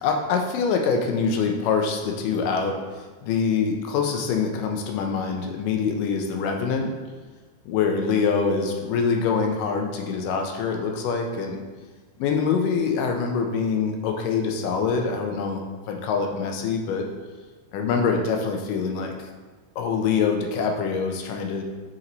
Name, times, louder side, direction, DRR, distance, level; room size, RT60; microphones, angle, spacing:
voice 1, 0.0-2.8 3.2-7.0 7.7-11.6 12.2-17.1 17.7-19.2 19.8-21.6, left 5 dB, 90° left, 3 dB, 2.4 m, -24 dB
6.9 x 4.5 x 4.0 m, 1.3 s
omnidirectional pair, 3.7 m